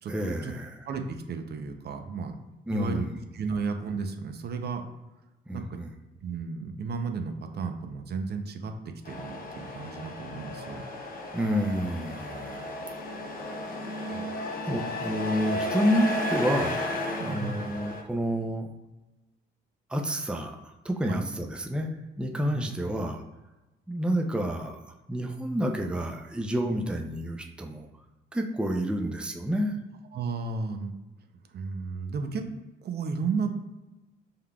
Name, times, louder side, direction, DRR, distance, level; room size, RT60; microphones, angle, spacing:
voice 1, 0.1-0.8 2.7-3.1 5.5-5.9 11.3-12.7 13.6-13.7 14.1-16.9 17.2-18.7 19.9-21.9 22.2-23.2 23.9-27.9 28.3-29.8, equal, 5° right, 2 dB, 0.5 m, -29 dB
voice 2, 0.9-2.4 2.7-3.1 3.3-4.9 5.5-5.8 6.2-10.8 12.3-12.6 17.2-17.7 21.1-21.2 22.4-22.6 30.1-31.0 31.5-32.5 32.8-33.5, right 4 dB, 55° right, 6 dB, 0.6 m, -33 dB
Truck, 9.1-18.0, left 1 dB, 45° left, 0.8 m, -34 dB
5.4 x 3.6 x 2.3 m, 1.1 s
cardioid pair, 90°, 20 cm